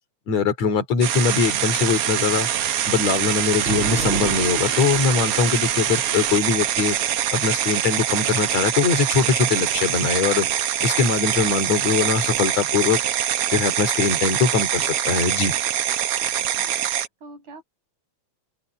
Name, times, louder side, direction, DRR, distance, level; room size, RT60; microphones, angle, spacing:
voice 1, 0.3-2.5 2.9-7.0 7.3-10.5 10.8-13.0 13.5-15.5, left 5 dB, 65° left, 4.2 m, -22 dB
sound 1, 1.0-17.1, right 10 dB, 60° right, 1.8 m, -24 dB
Thunder, 2.5-9.6 10.7-12.4, right 3 dB, 45° right, 5.0 m, -35 dB
voice 2, 16.2-17.6, right 2 dB, 80° right, 8.8 m, -46 dB
open air
omnidirectional pair, 3.3 m